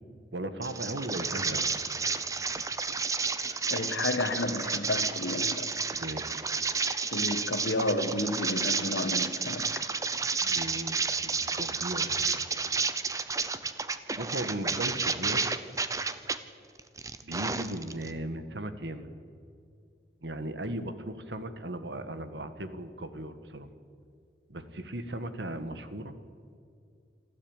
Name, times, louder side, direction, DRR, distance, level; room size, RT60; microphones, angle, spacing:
voice 1, 0.3-1.7 5.9-6.4 10.4-12.4 14.2-15.5 17.2-19.1 20.2-23.7 24.5-26.2, right 1 dB, 80° right, 1.6 m, -37 dB
sound 1, 0.6-16.4 16.8-18.1, right 4 dB, 20° right, 0.8 m, -31 dB
voice 2, 3.7-5.7 7.1-9.8, left 2 dB, 85° left, 1.5 m, -31 dB
27.5 x 13.0 x 8.9 m
head